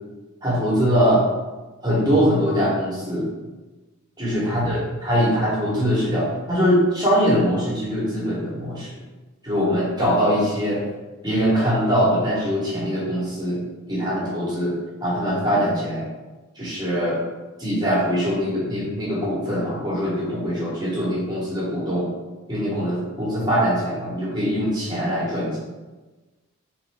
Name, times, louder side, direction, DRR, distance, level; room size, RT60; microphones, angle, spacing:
voice 1, 0.4-1.2 1.8-3.3 4.2-8.9 9.4-10.8 11.2-13.6 13.9-14.7 15.0-16.1 16.6-17.2 17.6-22.1 22.5-25.6, equal, 20° right, -6 dB, 1.1 m, -22 dB
3.7 x 3.0 x 3.4 m, 1.2 s
head